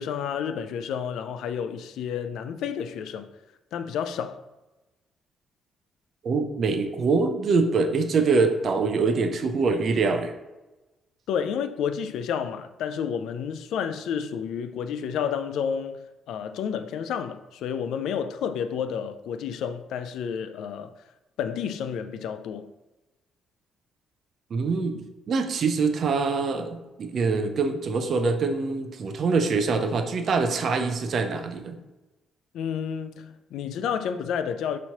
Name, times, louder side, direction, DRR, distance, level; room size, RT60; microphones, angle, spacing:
voice 1, 0.0-3.3 3.7-4.4 11.3-20.9 21.4-22.7 32.5-34.8, left 7 dB, 80° left, 0.3 m, -30 dB
voice 2, 6.2-10.3 24.5-31.7, right 4 dB, 50° right, 0.4 m, -24 dB
5.6 x 3.0 x 2.8 m
cardioid pair, 105°, 0 cm